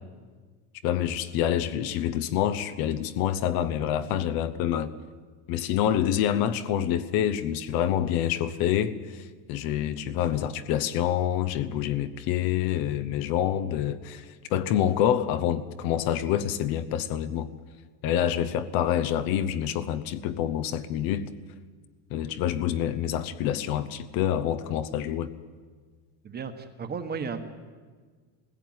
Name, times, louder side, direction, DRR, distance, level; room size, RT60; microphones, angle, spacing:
voice 1, 0.8-4.9 5.5-17.5 18.0-21.3 22.1-25.3, left 10 dB, 50° left, 1.0 m, -27 dB
voice 2, 26.2-27.4, right 5 dB, 20° right, 1.3 m, -34 dB
19.5 x 16.0 x 9.5 m
cardioid pair, 155°, 46 cm